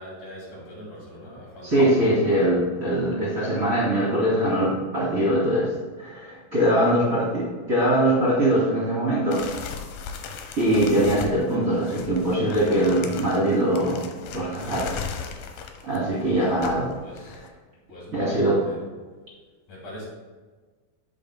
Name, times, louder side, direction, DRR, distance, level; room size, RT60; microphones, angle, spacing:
voice 1, 0.0-2.5 17.0-17.5 17.9-18.8 19.7-20.1, equal, 55° left, -6 dB, 4.0 m, -41 dB
voice 2, 1.6-9.5 10.6-14.1 14.3-15.0 15.8-16.9 18.1-18.7, right 1 dB, 25° right, -9 dB, 2.7 m, -22 dB
sound 1, 9.3-17.5, left 6 dB, 75° left, 2.4 m, -37 dB
11.5 x 8.0 x 2.2 m, 1.4 s
omnidirectional pair, 4.3 m